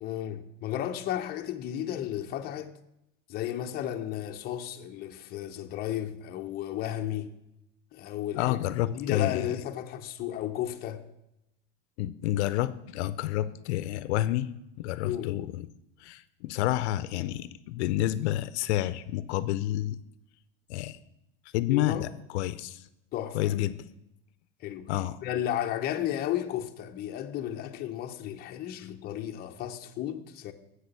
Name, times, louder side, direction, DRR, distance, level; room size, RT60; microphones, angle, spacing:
voice 1, 0.0-2.7 3.3-7.3 7.9-8.6 8.8-11.0 15.0-15.3 21.7-22.0 23.1-23.6 24.6-24.9 25.2-30.5, left 11 dB, 30° left, 0.6 m, -33 dB
voice 2, 8.3-9.5 12.0-15.6 16.0-20.0 20.7-21.0 21.5-22.9 23.3-23.9 24.9-25.2, left 14 dB, 75° left, 0.5 m, -29 dB
7.9 x 6.1 x 6.6 m
supercardioid pair, 145°, 34 cm